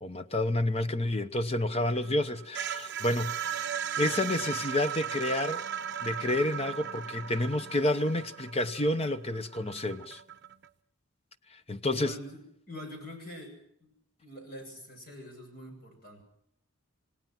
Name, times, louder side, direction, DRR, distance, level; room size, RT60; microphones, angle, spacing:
voice 1, 0.0-3.7 4.0-5.7 6.0-10.2 11.7-12.1, left 1 dB, 30° left, 0.9 m, -29 dB
sound 1, 1.8-10.7, right 8 dB, 55° right, 0.8 m, -37 dB
voice 2, 11.9-12.4 12.7-13.5 13.8-13.9 14.2-16.2, equal, 45° left, 7.5 m, -44 dB
28.0 x 18.5 x 6.0 m
head